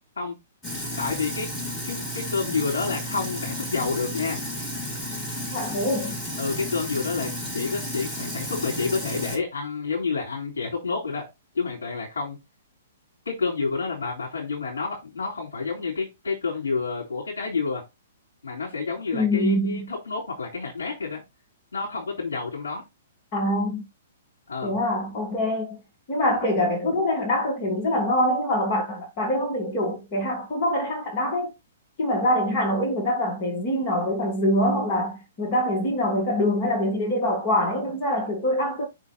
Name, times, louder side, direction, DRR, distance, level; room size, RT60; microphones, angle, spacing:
Sink (filling or washing), 0.6-9.4, left 1 dB, 10° left, 2.6 m, -32 dB
voice 1, 1.0-1.5 1.9-4.4 6.4-11.3 11.5-12.4 13.3-17.8 18.4-21.2 21.7-22.8 24.5-24.8, left 4 dB, 65° left, 3.6 m, -29 dB
voice 2, 5.5-6.2 19.1-19.9 23.3-23.8 24.6-25.8 26.1-31.5 32.0-38.9, left 1 dB, 35° left, 2.7 m, -24 dB
6.0 x 5.0 x 4.3 m
figure-of-eight pair, 115°, 0 cm